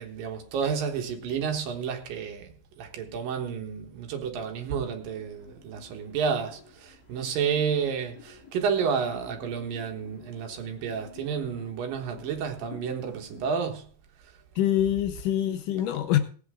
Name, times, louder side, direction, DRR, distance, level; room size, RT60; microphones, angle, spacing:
voice 1, 0.0-13.9, right 6 dB, 75° right, 3.0 m, -31 dB
sound 1, 4.6-13.5, left 7 dB, 50° left, 4.3 m, -52 dB
voice 2, 14.6-16.2, left 11 dB, 75° left, 2.2 m, -25 dB
17.5 x 8.5 x 3.7 m
omnidirectional pair, 4.1 m